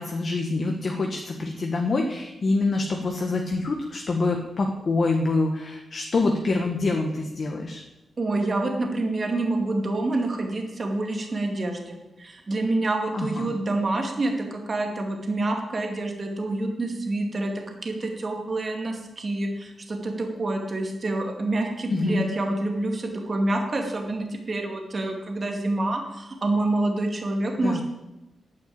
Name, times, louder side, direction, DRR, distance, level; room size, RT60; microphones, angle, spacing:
voice 1, 0.0-7.8 13.1-13.5 21.9-22.3 27.6-27.8, left 3 dB, 40° left, 2 dB, 1.4 m, -26 dB
voice 2, 8.2-27.8, right 2 dB, 30° right, 3 dB, 2.3 m, -27 dB
11.0 x 9.6 x 8.8 m, 0.97 s
wide cardioid pair, 170°, 0 cm